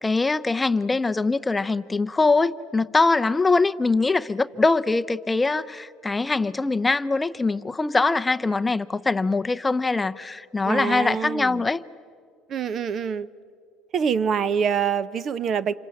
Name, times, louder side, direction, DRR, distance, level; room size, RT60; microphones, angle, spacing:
voice 1, 0.0-11.8, left 3 dB, 15° left, 12 dB, 0.6 m, -23 dB
voice 2, 10.6-11.6 12.5-13.3 13.9-15.7, right 7 dB, 45° right, 17 dB, 0.8 m, -25 dB
27.5 x 25.0 x 8.7 m, 2.2 s
supercardioid pair, 110°, 0 cm